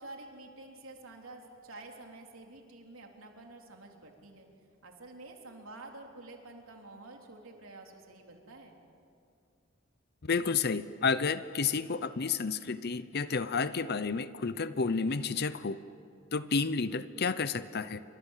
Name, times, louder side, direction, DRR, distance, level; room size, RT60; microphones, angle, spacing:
voice 1, 0.0-4.5 4.8-8.8, right 2 dB, 90° right, 2 dB, 3.6 m, -49 dB
voice 2, 10.2-15.8 16.3-18.0, left 5 dB, 50° left, 14 dB, 0.7 m, -31 dB
28.5 x 25.0 x 7.4 m, 2.4 s
head